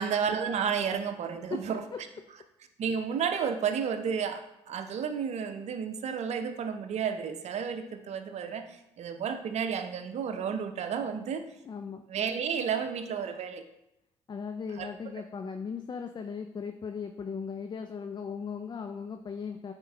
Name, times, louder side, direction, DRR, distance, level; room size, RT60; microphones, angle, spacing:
voice 1, 0.0-1.8 2.8-11.4 12.1-13.6 14.8-14.9, right 7 dB, 60° right, 8 dB, 0.8 m, -32 dB
voice 2, 11.6-12.0 14.3-19.7, left 6 dB, 35° left, 7 dB, 0.5 m, -37 dB
8.6 x 4.5 x 3.3 m, 0.85 s
hypercardioid pair, 55°, 13 cm